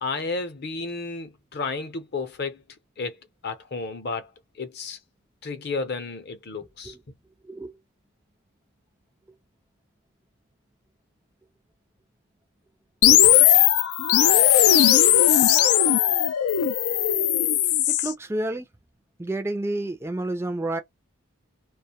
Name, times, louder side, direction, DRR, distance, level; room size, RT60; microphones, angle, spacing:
voice 1, 0.0-2.6 3.0-3.2 3.4-4.3 4.6-5.0 5.4-6.9, left 4 dB, 50° left, 0.6 m, -32 dB
sound 1, 13.0-18.1, left 11 dB, 90° left, 0.4 m, -18 dB
voice 2, 18.0-18.7 19.2-20.8, right 1 dB, 10° right, 0.3 m, -29 dB
2.4 x 2.2 x 2.7 m
head